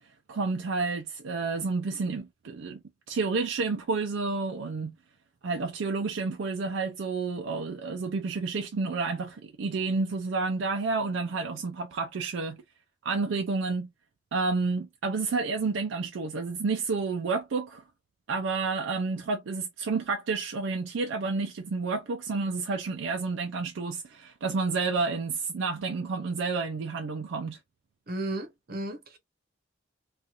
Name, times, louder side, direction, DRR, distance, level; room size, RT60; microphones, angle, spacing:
voice 1, 0.3-5.0 5.4-12.6 13.0-13.9 14.3-17.8 18.3-27.6, right 4 dB, 70° right, 0.4 m, -30 dB
voice 2, 28.1-29.2, right 1 dB, 50° right, 0.8 m, -34 dB
2.8 x 2.4 x 2.4 m
head